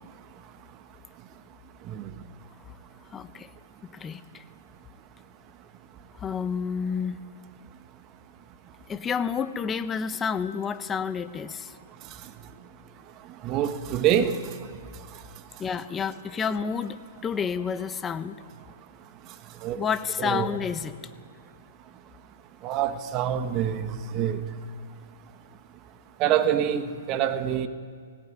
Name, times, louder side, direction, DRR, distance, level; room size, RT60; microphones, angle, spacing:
voice 1, 3.1-3.5 3.8-4.4 6.1-7.2 8.9-11.7 15.6-18.4 19.8-21.0, left 6 dB, 15° left, 11 dB, 1.1 m, -30 dB
voice 2, 13.4-14.4 19.6-19.8 20.2-20.5 22.6-24.4 26.2-26.8 27.1-27.7, right 10 dB, 30° right, 9 dB, 1.5 m, -25 dB
20.0 x 18.0 x 9.6 m, 2.1 s
hypercardioid pair, 130°, 0 cm